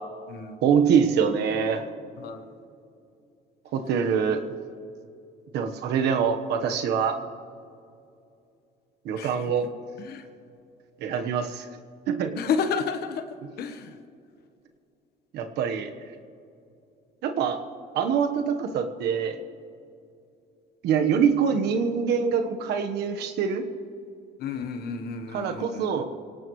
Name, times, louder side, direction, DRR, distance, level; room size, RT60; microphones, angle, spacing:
voice 1, 0.6-1.9 3.7-4.4 5.5-7.2 9.0-9.7 11.0-11.6 12.1-12.4 15.3-15.9 17.2-17.6 17.9-19.4 20.8-23.6 25.3-26.0, right 7 dB, 80° right, 6 dB, 1.2 m, -24 dB
voice 2, 12.4-13.3 13.6-13.9 24.4-25.9, left 6 dB, 70° left, 8 dB, 1.2 m, -30 dB
24.0 x 17.5 x 3.2 m, 2.6 s
cardioid pair, 110°, 17 cm